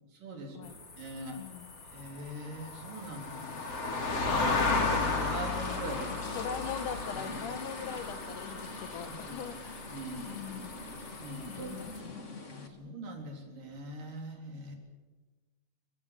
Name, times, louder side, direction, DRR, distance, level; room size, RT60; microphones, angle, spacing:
voice 1, 0.2-1.4 1.9-3.7 4.7-6.1 9.2-9.4 9.9-10.4 11.2-11.8 12.5-14.8, right 2 dB, 90° right, 3 dB, 5.5 m, -42 dB
sound 1, 0.6-12.0, left 3 dB, 50° left, 4.5 m, -35 dB
voice 2, 1.4-1.7 6.0-9.6 10.3-10.8 11.5-12.3, left 7 dB, 75° left, 10 dB, 3.0 m, -41 dB
sound 2, 4.7-12.7, left 2 dB, 25° left, 2.1 m, -45 dB
29.5 x 16.5 x 8.4 m, 1.3 s
omnidirectional pair, 3.7 m